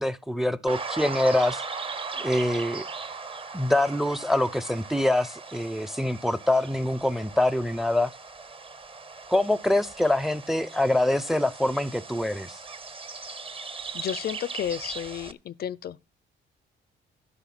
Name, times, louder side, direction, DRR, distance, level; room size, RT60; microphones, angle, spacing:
voice 1, 0.0-1.6 2.2-2.8 3.5-8.1 9.3-12.6, left 1 dB, ahead, 0.5 m, -25 dB
sound 1, 0.7-15.3, right 4 dB, 25° right, 0.8 m, -39 dB
voice 2, 13.9-16.2, left 10 dB, 50° left, 0.5 m, -32 dB
12.0 x 5.5 x 5.9 m
cardioid pair, 90°, 20 cm